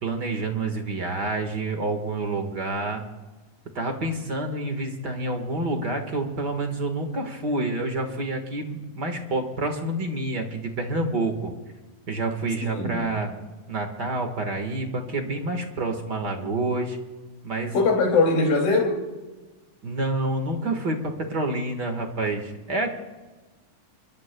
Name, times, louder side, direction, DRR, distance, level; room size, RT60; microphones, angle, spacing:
voice 1, 0.0-3.0 3.7-11.5 12.1-13.3 13.7-17.0 17.4-17.7 19.8-23.0, right 2 dB, 45° right, 1.5 m, -28 dB
voice 2, 12.6-13.2 17.7-19.0, left 3 dB, 80° left, 4.5 m, -21 dB
27.5 x 23.0 x 2.3 m
omnidirectional pair, 3.9 m